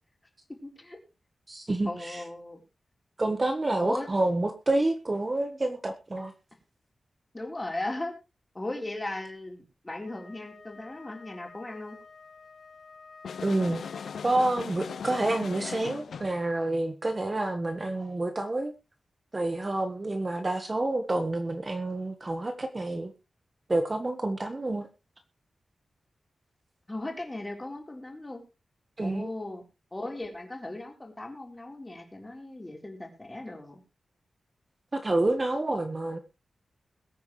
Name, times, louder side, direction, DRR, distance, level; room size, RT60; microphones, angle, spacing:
voice 1, 0.5-1.0 1.8-2.6 3.8-4.1 7.3-8.1 8.5-12.0 26.9-28.4 29.0-29.6 29.9-33.8, left 2 dB, 15° left, 2 dB, 4.0 m, -37 dB
voice 2, 1.5-2.2 3.2-6.3 13.4-13.8 14.2-18.7 19.3-23.1 23.7-24.9 29.0-29.3 34.9-36.2, right 2 dB, 25° right, 6 dB, 1.3 m, -28 dB
Wind instrument woodwind instrument, 10.0-14.6, left 4 dB, 55° left, 4.3 m, -51 dB
sound 1, 13.2-16.4, left 6 dB, 90° left, 0.5 m, -38 dB
21.5 x 9.3 x 3.2 m, 0.29 s
wide cardioid pair, 165°, 0 cm